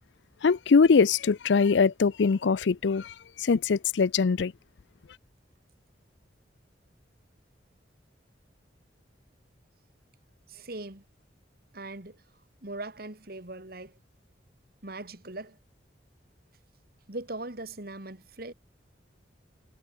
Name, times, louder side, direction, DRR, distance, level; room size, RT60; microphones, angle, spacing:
voice 1, 0.4-4.5, left 5 dB, 75° left, 0.5 m, -22 dB
voice 2, 10.5-11.0 11.7-12.2 12.6-14.0 14.8-15.6 17.1-18.5, right 2 dB, 55° right, 2.4 m, -40 dB
head